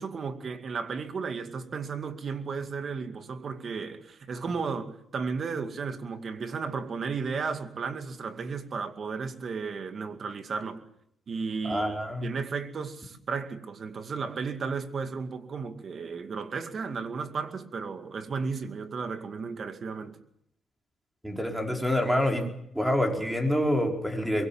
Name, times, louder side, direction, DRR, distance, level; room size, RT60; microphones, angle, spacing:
voice 1, 0.0-10.8 11.3-20.2, right 5 dB, 45° right, 2.3 m, -34 dB
voice 2, 11.6-12.3 21.2-22.5 22.7-24.5, left 1 dB, 5° right, 5.0 m, -27 dB
23.5 x 22.0 x 7.4 m
cardioid pair, 110°, 0 cm